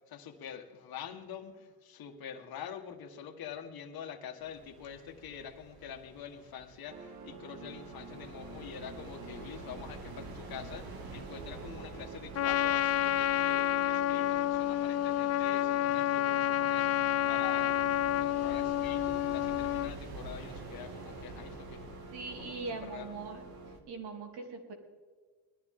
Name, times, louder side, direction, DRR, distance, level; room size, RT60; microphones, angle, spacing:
voice 1, 0.1-17.8 18.2-21.9 22.4-23.2, left 8 dB, 70° left, 5 dB, 1.8 m, -46 dB
sound 1, 4.4-23.8, right 3 dB, 70° right, 2.3 m, -49 dB
sound 2, 6.9-23.8, right 4 dB, 50° right, 1.7 m, -49 dB
Trumpet, 12.3-19.9, left 13 dB, 45° left, 0.4 m, -29 dB
voice 2, 22.1-23.4 23.9-24.7, right 4 dB, 85° right, 2 dB, 3.3 m, -41 dB
20.0 x 13.5 x 3.8 m, 1.5 s
cardioid pair, 125°, 38 cm